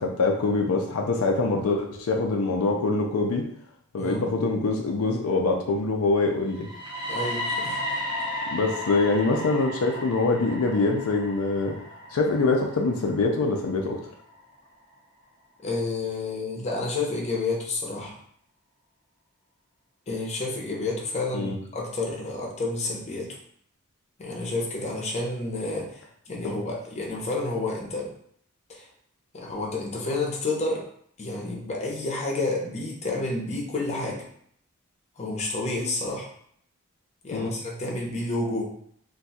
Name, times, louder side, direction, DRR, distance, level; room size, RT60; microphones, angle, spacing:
voice 1, 0.0-3.5 3.9-6.7 8.5-11.8 12.1-14.0 21.3-21.6 26.4-26.6 37.3-37.5, left 3 dB, 80° left, 1 dB, 0.4 m, -24 dB
sound 1, 6.5-14.4, left 1 dB, 20° right, 0.7 m, -34 dB
voice 2, 7.1-7.8 15.6-18.1 20.1-23.3 24.2-28.1 28.7-28.9 29.3-30.8 31.2-34.2 35.2-36.3 37.2-38.7, left 2 dB, 30° left, -2 dB, 0.7 m, -30 dB
2.6 x 2.3 x 4.0 m, 0.66 s
head